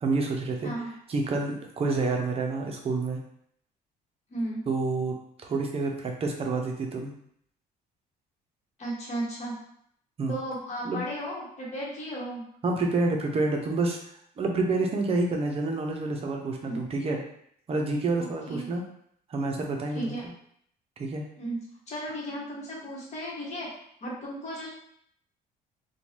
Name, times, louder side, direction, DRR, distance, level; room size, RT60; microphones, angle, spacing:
voice 1, 0.0-0.7 1.1-3.2 4.7-5.2 5.4-7.1 10.2-10.4 10.8-11.0 12.6-14.0 14.4-17.2 17.7-18.8 19.3-20.1 21.0-21.2, right 3 dB, 35° right, 1 dB, 0.6 m, -28 dB
voice 2, 4.3-4.7 8.8-9.6 10.3-12.5 16.7-16.8 18.2-18.7 19.9-20.3 21.4-23.7 24.0-24.7, right 1 dB, 40° left, -4 dB, 1.1 m, -35 dB
2.6 x 2.2 x 3.1 m, 0.68 s
cardioid pair, 110°, 17 cm